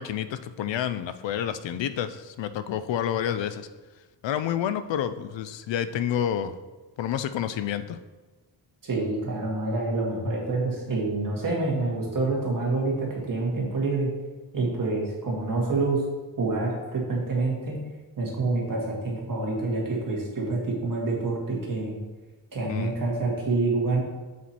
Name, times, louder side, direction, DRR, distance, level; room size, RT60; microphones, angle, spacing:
voice 1, 0.0-3.7 4.2-6.6 7.0-8.0 22.6-22.9, left 9 dB, 80° left, 12 dB, 0.5 m, -29 dB
voice 2, 8.8-14.1 14.5-16.0 16.4-17.8 18.2-21.9 22.5-24.0, right 3 dB, 45° right, -3 dB, 1.9 m, -27 dB
7.3 x 4.3 x 4.3 m, 1.3 s
wide cardioid pair, 155°, 44 cm